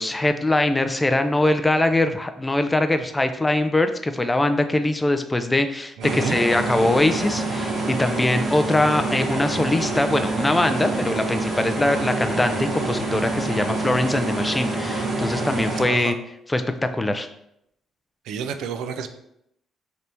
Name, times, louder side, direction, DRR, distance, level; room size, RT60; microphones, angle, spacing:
voice 1, 0.0-16.2 16.5-17.3, left 1 dB, 15° left, 8 dB, 0.3 m, -22 dB
sound 1, 6.0-15.8, right 2 dB, 60° right, 1.6 m, -26 dB
voice 2, 6.0-6.4 15.8-16.1 18.3-19.1, right 7 dB, 90° right, 8 dB, 0.3 m, -30 dB
3.4 x 2.7 x 4.3 m, 0.76 s
cardioid pair, 110°, 0 cm